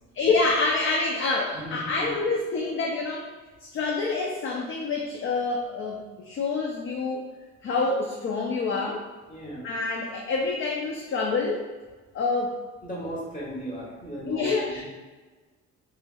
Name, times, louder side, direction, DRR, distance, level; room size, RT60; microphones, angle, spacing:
voice 1, 0.1-3.3 3.6-7.3 7.6-9.1 9.6-11.7 12.1-12.6 14.3-14.8, left 3 dB, 45° left, 0 dB, 0.4 m, -27 dB
voice 2, 1.5-2.1 9.3-9.7 12.8-14.8, right 1 dB, 25° left, -5 dB, 1.3 m, -36 dB
3.2 x 3.0 x 2.2 m, 1.3 s
cardioid pair, 90°, 30 cm